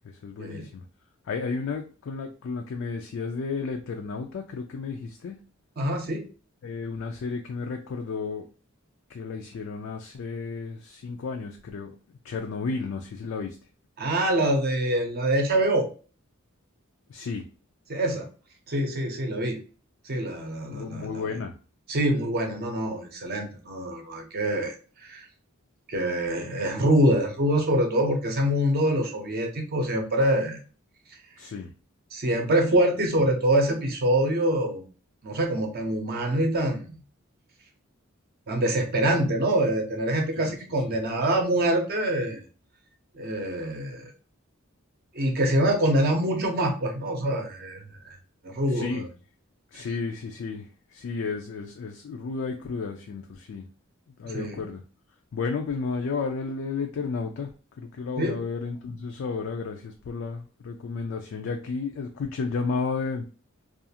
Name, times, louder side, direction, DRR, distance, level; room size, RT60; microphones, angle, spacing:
voice 1, 0.0-0.8 1.3-5.4 6.6-8.5 9.1-11.9 12.2-13.6 17.1-17.4 20.7-21.5 31.4-31.7 40.4-40.5 48.7-49.1 49.7-53.7 54.2-54.8 55.3-57.5 57.8-63.3, left 4 dB, 65° left, 3 dB, 0.3 m, -32 dB
voice 2, 5.8-6.2 14.0-15.9 17.9-18.3 18.7-19.6 20.1-21.3 21.9-25.2 25.9-30.6 32.1-34.8 35.2-36.9 38.5-42.4 43.1-44.1 45.1-48.1 48.4-49.1 49.7-49.8 54.2-54.6 58.2-58.4, right 1 dB, 45° right, 3 dB, 0.6 m, -25 dB
2.4 x 2.4 x 2.7 m, 0.37 s
head